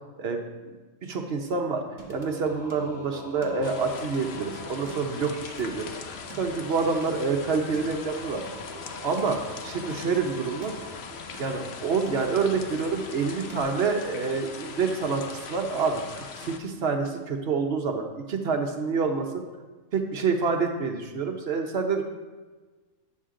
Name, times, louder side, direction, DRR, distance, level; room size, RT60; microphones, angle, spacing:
voice 1, 1.0-1.8 2.1-5.9 6.4-8.4 9.0-10.9 11.4-19.4 19.9-22.0, right 4 dB, 55° right, 4 dB, 1.0 m, -27 dB
Singing, 2.0-13.6, right 1 dB, 15° right, 1.0 m, -44 dB
sound 1, 3.6-16.6, left 5 dB, 55° left, 0.8 m, -41 dB
9.7 x 6.4 x 3.7 m, 1.3 s
omnidirectional pair, 1.4 m